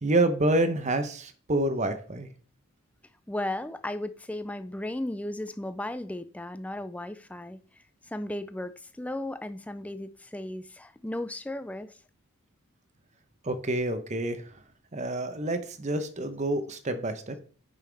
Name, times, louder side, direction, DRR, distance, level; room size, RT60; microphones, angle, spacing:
voice 1, 0.0-2.3 13.4-14.4 14.9-17.4, right 1 dB, 30° right, 0.8 m, -27 dB
voice 2, 3.3-7.6 8.1-11.9, left 1 dB, 5° left, 0.3 m, -35 dB
8.3 x 5.6 x 3.4 m
head